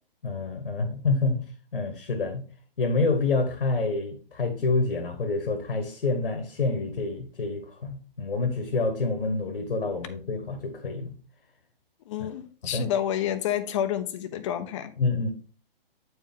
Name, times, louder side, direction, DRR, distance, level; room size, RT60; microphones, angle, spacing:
voice 1, 0.2-1.5 1.7-2.4 2.8-11.2 12.2-12.3 12.6-12.9 15.0-15.3, left 3 dB, 75° left, 1.4 m, -27 dB
voice 2, 12.1-14.9, left 10 dB, 30° left, 0.7 m, -29 dB
8.5 x 4.7 x 3.5 m
figure-of-eight pair, 135°, 29 cm